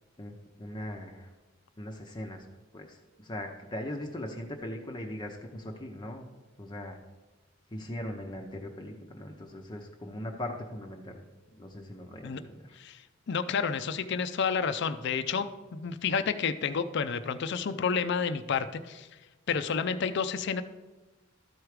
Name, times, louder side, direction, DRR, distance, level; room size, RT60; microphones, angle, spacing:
voice 1, 0.2-1.3 1.8-2.4 2.7-6.3 6.6-7.0 7.7-11.2 11.5-12.8, left 1 dB, 20° left, 2 dB, 0.7 m, -40 dB
voice 2, 13.3-19.1 19.5-20.6, left 6 dB, 60° left, 11 dB, 0.5 m, -30 dB
13.0 x 4.7 x 4.9 m, 1.2 s
head